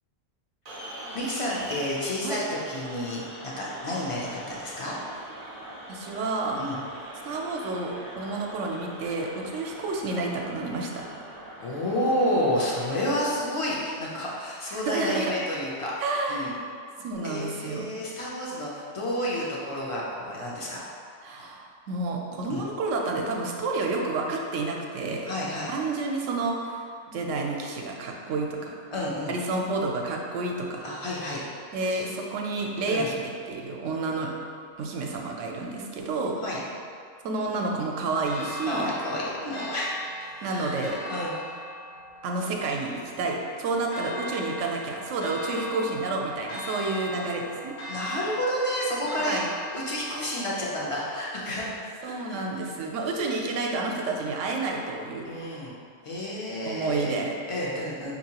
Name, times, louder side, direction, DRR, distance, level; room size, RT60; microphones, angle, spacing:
sound 1, 0.7-13.3, right 1 dB, 50° right, 0.5 m, -42 dB
voice 1, 1.1-3.2 3.6-4.9 6.6-6.8 11.6-15.9 16.3-16.5 17.2-21.5 22.5-22.6 25.2-25.7 28.9-29.4 30.8-32.0 32.9-33.1 36.4-36.6 38.6-39.9 40.2-40.8 41.1-41.3 47.9-49.4 49.7-51.8 52.0-52.6 55.2-55.8 56.0-57.2 57.5-58.1, left 1 dB, 40° left, -5 dB, 0.4 m, -30 dB
voice 2, 5.9-6.6 7.2-11.0 14.7-15.3 16.0-16.5 17.0-17.9 21.2-25.3 25.7-26.8 27.1-28.8 29.3-30.9 31.7-34.3 34.8-36.4 37.2-38.9 40.4-41.0 42.2-47.7 49.2-49.4 52.0-55.4 56.6-57.4, right 3 dB, 75° right, 0 dB, 0.9 m, -30 dB
Church bell, 38.2-52.2, equal, 85° left, 1.1 m, -40 dB
5.2 x 2.8 x 2.8 m, 2.3 s
omnidirectional pair, 1.3 m